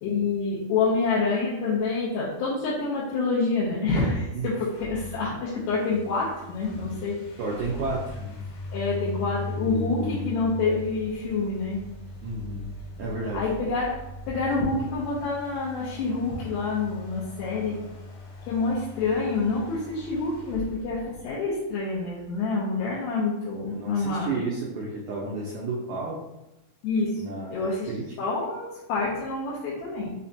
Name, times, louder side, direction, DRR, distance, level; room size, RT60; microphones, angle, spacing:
voice 1, 0.0-7.2 8.7-11.8 13.3-13.9 14.3-17.8 18.4-24.3 26.8-27.9 28.2-30.1, left 3 dB, 90° left, -6 dB, 2.5 m, -27 dB
sound 1, 4.5-22.0, left 2 dB, 70° left, 2.5 m, -39 dB
voice 2, 7.4-8.4 9.6-10.4 12.2-12.7 13.0-13.5 23.5-26.2 27.2-28.0, right 3 dB, 85° right, -5 dB, 1.8 m, -32 dB
5.9 x 2.1 x 2.7 m, 0.95 s
omnidirectional pair, 4.2 m